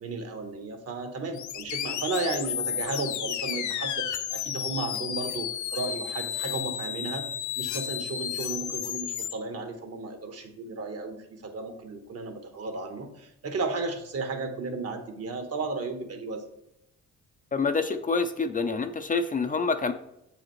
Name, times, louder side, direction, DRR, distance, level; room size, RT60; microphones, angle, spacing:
voice 1, 0.0-7.2 7.6-16.4, right 3 dB, 55° right, 5 dB, 1.2 m, -34 dB
sound 1, 1.3-9.3, left 10 dB, 70° left, 0.6 m, -32 dB
voice 2, 17.5-19.9, left 4 dB, 30° left, 7 dB, 0.5 m, -27 dB
7.4 x 4.9 x 3.1 m, 0.81 s
cardioid pair, 90°, 30 cm